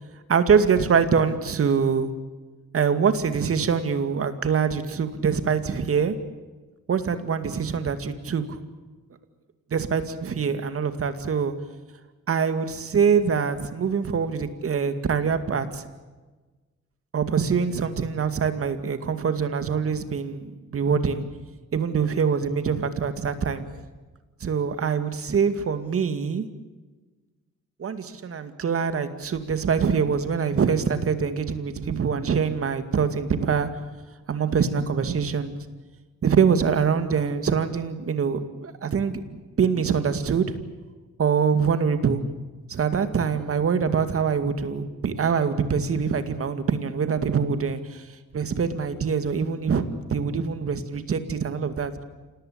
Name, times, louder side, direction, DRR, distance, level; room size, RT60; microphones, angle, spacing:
voice 1, 0.3-2.1 2.7-6.1 6.9-8.6 9.7-11.5 12.3-15.9 17.1-21.2 21.7-23.7 24.4-26.5 27.8-33.7 34.3-35.6 36.2-40.5 41.2-42.2 42.7-48.0 48.3-49.8 50.1-51.9, right 6 dB, 50° right, 10 dB, 2.3 m, -24 dB
27.0 x 18.5 x 8.8 m, 1.3 s
cardioid pair, 90°, 30 cm